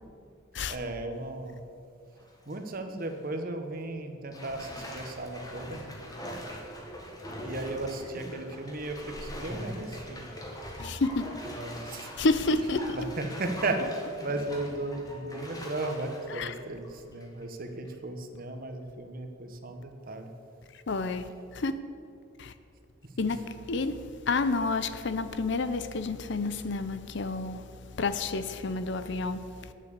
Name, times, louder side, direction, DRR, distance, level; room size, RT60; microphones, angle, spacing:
voice 1, 0.7-1.6 2.5-5.8 7.4-10.3 11.5-12.1 12.9-13.8 14.2-20.3 23.0-23.1, right 2 dB, 45° right, 1.1 m, -35 dB
Bathtub (filling or washing), 2.1-2.6 3.0-3.1 4.3-17.4 17.9-18.0, equal, 20° left, 1.5 m, -42 dB
voice 2, 10.8-11.2 12.2-13.0 16.3-16.5 20.9-21.7 22.4-22.5 23.2-27.6 28.0-29.7, left 3 dB, 60° left, 0.6 m, -30 dB
9.2 x 7.5 x 8.2 m
head